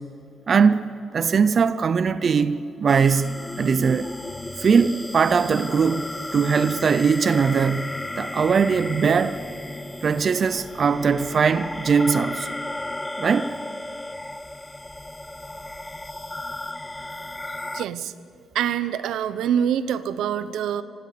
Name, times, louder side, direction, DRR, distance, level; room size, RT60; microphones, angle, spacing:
voice 1, 0.5-0.9 1.1-4.1 4.6-6.0 6.3-9.4 10.0-12.6 13.2-13.5, right 6 dB, 45° right, 0.6 m, -20 dB
sound 1, 2.9-17.9, left 2 dB, 10° left, 0.4 m, -34 dB
voice 2, 17.7-18.1 18.5-20.8, right 9 dB, 85° right, 0.9 m, -25 dB
26.5 x 17.0 x 6.8 m
cardioid pair, 120°, 0 cm